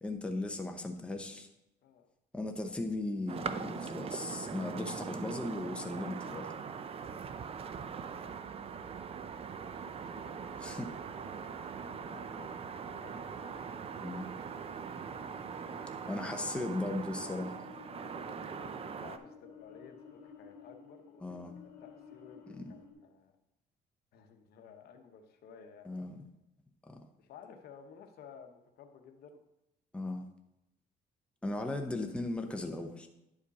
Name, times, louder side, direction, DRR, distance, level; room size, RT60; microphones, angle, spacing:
voice 1, 0.0-1.5 2.3-6.5 10.6-10.9 14.0-14.3 16.1-17.5 21.2-21.6 22.6-22.8 25.8-26.2 26.9-27.0 29.9-30.3 31.4-33.1, left 2 dB, 5° left, 3 dB, 0.8 m, -37 dB
sound 1, 3.3-19.2, right 6 dB, 35° right, 0.5 m, -41 dB
voice 2, 9.8-15.4 15.6-16.1 17.2-21.4 21.8-23.4 24.1-26.0 27.2-29.4, left 7 dB, 70° left, 6 dB, 1.0 m, -56 dB
sound 2, 16.6-22.9, left 6 dB, 40° left, 2.6 m, -54 dB
10.0 x 5.1 x 4.1 m, 0.87 s
cardioid pair, 110°, 17 cm